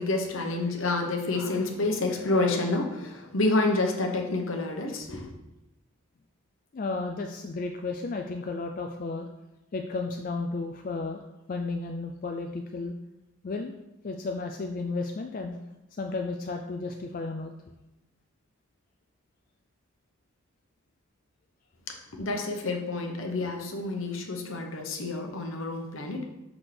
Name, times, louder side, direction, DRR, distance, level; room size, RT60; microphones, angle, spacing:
voice 1, 0.0-5.3 21.9-26.2, left 2 dB, 75° left, 2 dB, 1.0 m, -29 dB
voice 2, 6.7-9.3 9.7-11.2 11.5-13.0 13.4-13.7 14.0-15.6 16.0-17.5, left 3 dB, 40° left, 3 dB, 0.3 m, -33 dB
6.2 x 5.9 x 3.3 m, 0.96 s
head